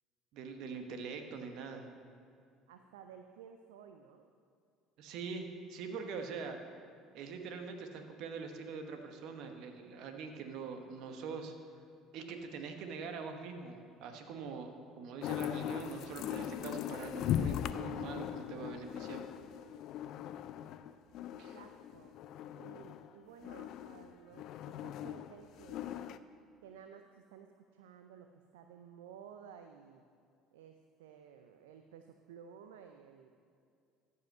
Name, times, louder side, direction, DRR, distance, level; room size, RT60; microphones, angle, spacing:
voice 1, 0.3-1.9 5.0-6.6 7.1-11.5 12.1-19.2 21.4-21.6, right 5 dB, 65° right, 5 dB, 1.1 m, -43 dB
voice 2, 2.7-4.3 12.5-12.6 21.3-22.1 22.5-26.1 26.6-30.0 30.5-33.3, right 7 dB, 80° right, 6 dB, 0.4 m, -55 dB
sound 1, 15.2-23.1 23.4-26.2, left 10 dB, 60° left, 0.3 m, -39 dB
14.0 x 5.6 x 5.4 m, 2.4 s
hypercardioid pair, 65°, 0 cm